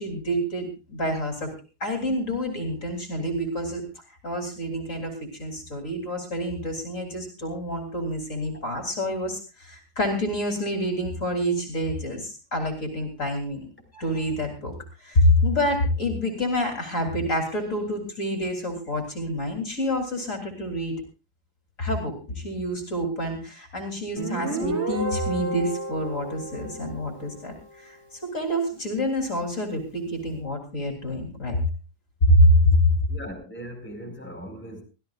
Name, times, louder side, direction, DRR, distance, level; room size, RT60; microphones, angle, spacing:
voice 1, 0.0-1.5 1.8-3.8 4.2-14.7 15.0-21.0 21.8-31.6 32.3-32.8, equal, 55° left, 3 dB, 3.7 m, -27 dB
Guitar, 24.2-27.6, right 2 dB, 45° right, 2.8 m, -31 dB
voice 2, 33.1-34.8, equal, 5° left, 1 dB, 5.2 m, -39 dB
24.0 x 16.0 x 2.5 m, 0.30 s
omnidirectional pair, 1.6 m